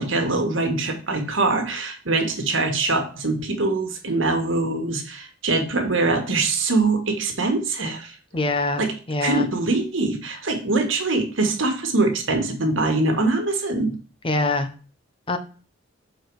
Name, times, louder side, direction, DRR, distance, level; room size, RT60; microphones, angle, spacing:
voice 1, 0.0-8.1 8.8-8.9 9.2-13.9, right 3 dB, 75° right, 4 dB, 1.6 m, -23 dB
voice 2, 8.3-9.5 14.2-14.7 15.3-15.4, left 2 dB, 25° left, 8 dB, 0.7 m, -24 dB
6.7 x 4.4 x 4.7 m, 0.38 s
head